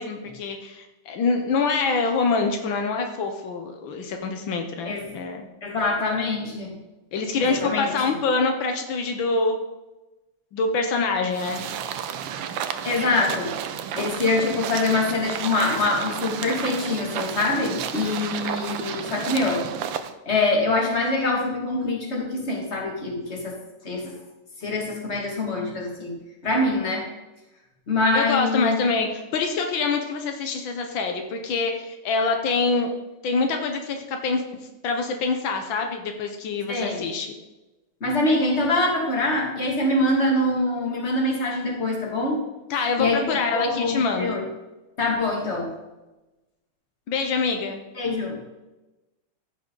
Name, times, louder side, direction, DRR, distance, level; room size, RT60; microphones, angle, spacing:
voice 1, 0.0-5.5 7.1-9.6 10.5-11.6 28.1-32.9 33.2-34.4 34.8-37.3 42.7-44.4 47.1-47.8, left 4 dB, 85° left, 4 dB, 1.8 m, -25 dB
voice 2, 4.8-5.2 5.6-6.7 7.4-8.1 12.8-13.5 13.9-19.6 20.3-23.6 23.8-24.1 24.6-26.1 26.4-27.1 27.9-28.9 36.7-37.1 38.0-42.4 43.0-44.5 45.0-45.7 48.0-48.5, left 2 dB, 35° left, -2 dB, 2.5 m, -24 dB
sound 1, 11.3-20.1, right 8 dB, 85° right, 1.5 m, -32 dB
15.0 x 6.1 x 3.9 m, 1.0 s
omnidirectional pair, 2.1 m